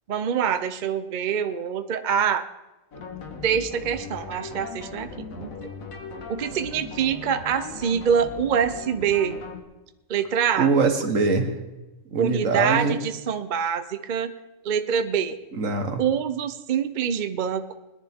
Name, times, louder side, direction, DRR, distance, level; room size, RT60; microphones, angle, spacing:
voice 1, 0.1-2.4 3.4-5.5 6.3-9.4 10.1-10.7 12.2-14.3 14.6-15.4 16.0-17.8, right 7 dB, 45° right, 10 dB, 0.7 m, -25 dB
sound 1, 2.9-9.6, left 4 dB, 85° left, 1.8 m, -38 dB
voice 2, 10.6-11.5 12.1-13.0 15.5-16.0, right 4 dB, 70° right, 6 dB, 1.7 m, -22 dB
21.0 x 10.5 x 3.6 m, 1.0 s
omnidirectional pair, 1.4 m